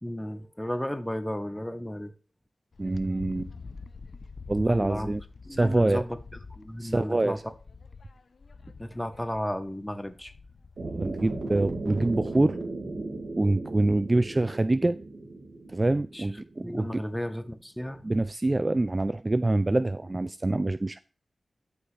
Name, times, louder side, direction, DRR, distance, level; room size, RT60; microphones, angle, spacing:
voice 1, 0.0-2.1 4.7-5.1 5.5-6.2 6.5-7.4 8.8-10.3 16.1-16.3 16.6-18.0, equal, 5° left, 1.0 m, -33 dB
Wind, 2.7-10.9, left 4 dB, 60° left, 0.5 m, -45 dB
voice 2, 2.8-3.5 4.5-5.2 5.5-6.0 6.8-7.4 10.8-12.6 13.4-15.0 15.7-17.0 18.0-21.0, right 2 dB, 25° right, 0.3 m, -25 dB
sound 1, 10.8-16.9, right 2 dB, 65° right, 2.1 m, -36 dB
12.5 x 5.4 x 3.3 m
wide cardioid pair, 90°, 0 cm